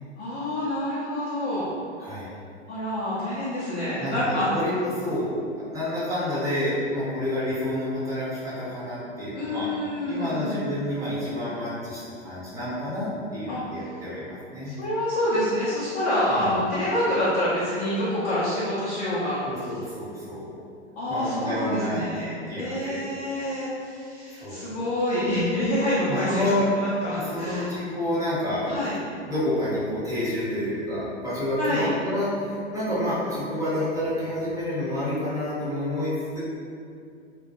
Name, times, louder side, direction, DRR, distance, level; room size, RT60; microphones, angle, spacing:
voice 1, 0.2-1.7 2.7-4.5 9.3-10.6 13.5-13.6 14.6-19.4 21.0-26.4 26.8-27.7 28.7-28.9 31.6-31.9, left 1 dB, 20° left, -11 dB, 0.4 m, -27 dB
voice 2, 4.0-5.3 5.6-9.7 10.0-14.8 16.3-16.6 19.4-20.5 21.1-23.0 24.3-24.7 26.1-26.7 27.2-28.7 29.3-36.4, left 1 dB, 10° right, -11 dB, 0.7 m, -29 dB
2.1 x 2.1 x 2.8 m, 2.4 s
figure-of-eight pair, 95°, 36 cm